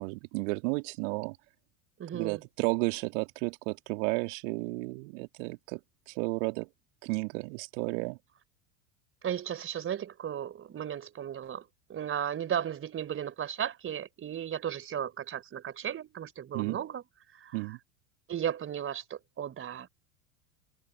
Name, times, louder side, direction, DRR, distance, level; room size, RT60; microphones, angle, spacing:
voice 1, 0.0-1.4 2.1-5.8 6.1-6.7 7.0-8.2 16.5-16.8 17.5-17.8, right 31 dB, 50° right, 2.8 m, -32 dB
voice 2, 2.0-2.4 9.2-11.6 11.9-17.0 17.4-17.6 18.3-19.9, right 9 dB, 25° right, 4.1 m, -35 dB
figure-of-eight pair, 80°, 47 cm